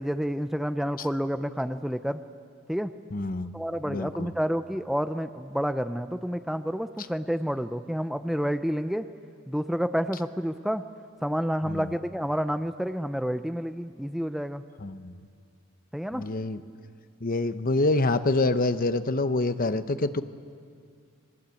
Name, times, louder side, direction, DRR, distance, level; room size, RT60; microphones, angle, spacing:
voice 1, 0.0-2.2 2.7-2.9 3.5-9.1 9.5-10.8 11.2-14.6 15.9-16.3, equal, ahead, 9 dB, 0.6 m, -29 dB
voice 2, 3.1-3.6 3.9-4.3 11.7-11.9 14.8-15.2 16.1-16.6 17.2-20.2, left 2 dB, 45° left, 11 dB, 0.9 m, -26 dB
29.5 x 22.0 x 8.4 m, 2.3 s
head